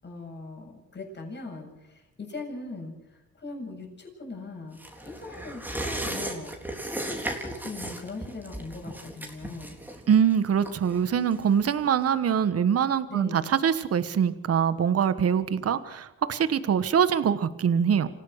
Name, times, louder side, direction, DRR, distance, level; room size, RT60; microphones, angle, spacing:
voice 1, 0.0-6.5 6.8-9.8 13.1-13.5, left 3 dB, 35° left, 2 dB, 7.9 m, -40 dB
sound 1, 4.8-11.8 12.1-12.2, right 1 dB, 5° right, 3.8 m, -36 dB
voice 2, 10.1-18.1, right 8 dB, 50° right, 13 dB, 1.5 m, -24 dB
27.5 x 16.5 x 6.6 m, 0.91 s
cardioid pair, 90°, 30 cm